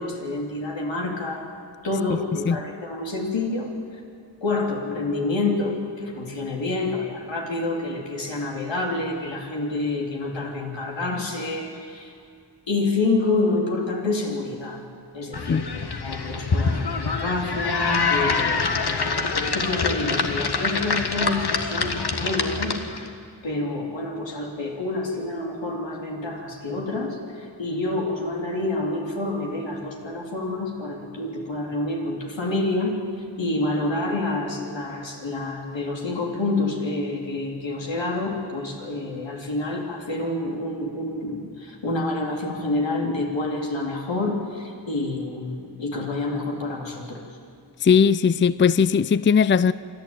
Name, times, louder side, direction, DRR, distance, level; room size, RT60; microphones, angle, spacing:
voice 1, 0.0-1.5 1.8-3.7 4.4-12.1 12.7-14.8 15.1-23.1 23.4-33.0 33.4-47.2, left 2 dB, 80° left, 3.6 m, -28 dB
sound 1, 15.3-23.1, left 4 dB, 60° left, 1.7 m, -25 dB
voice 2, 47.8-49.7, left 6 dB, 25° left, 0.4 m, -18 dB
27.0 x 11.5 x 9.1 m
cardioid pair, 55°, 44 cm